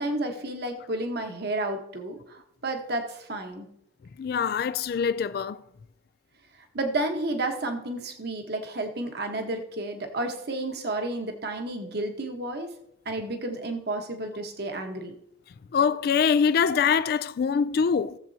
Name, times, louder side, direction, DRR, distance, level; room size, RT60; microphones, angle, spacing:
voice 1, 0.0-3.7 6.7-12.7 13.0-15.1, right 2 dB, 60° right, 1.2 m, -31 dB
voice 2, 4.2-5.6 15.7-18.2, left 6 dB, 55° left, 0.3 m, -24 dB
16.5 x 7.5 x 2.8 m
head